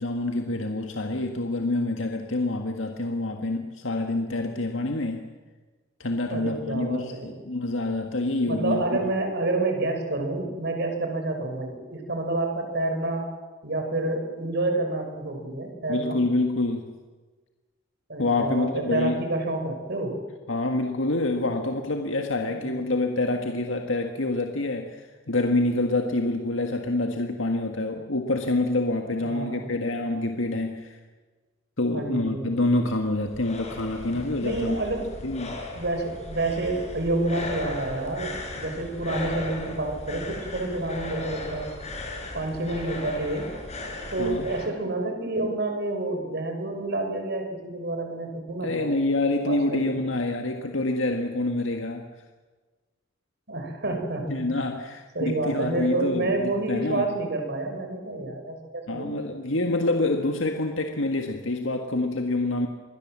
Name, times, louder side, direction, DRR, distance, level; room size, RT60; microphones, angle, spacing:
voice 1, 0.0-5.3 6.0-9.0 15.9-16.9 18.2-19.2 20.5-31.0 31.8-34.8 35.2-35.6 44.2-44.5 48.6-52.1 54.3-57.1 58.9-62.7, left 2 dB, 80° left, 4 dB, 1.8 m, -27 dB
voice 2, 6.3-7.4 8.4-13.3 13.6-16.2 18.1-20.2 22.5-22.8 29.3-29.7 31.9-32.6 34.4-35.1 35.7-41.7 42.3-43.5 44.1-48.9 49.5-50.0 53.5-54.5 55.1-59.2, right 2 dB, 60° right, 4 dB, 5.4 m, -29 dB
sound 1, 32.9-44.7, left 1 dB, 35° left, 4.9 m, -37 dB
27.0 x 21.0 x 7.5 m, 1.3 s
head